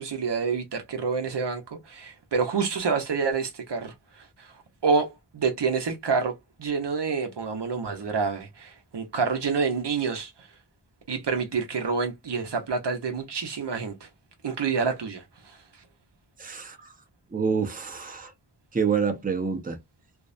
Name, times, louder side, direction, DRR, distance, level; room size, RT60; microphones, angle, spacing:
voice 1, 0.0-4.5 4.8-6.3 6.6-10.3 11.1-14.1 14.4-15.6, right 5 dB, 70° right, 0.7 m, -28 dB
voice 2, 16.4-16.9 17.3-18.3 18.7-19.8, right 6 dB, 20° right, 0.6 m, -27 dB
2.5 x 2.0 x 2.4 m
wide cardioid pair, 45°, 43 cm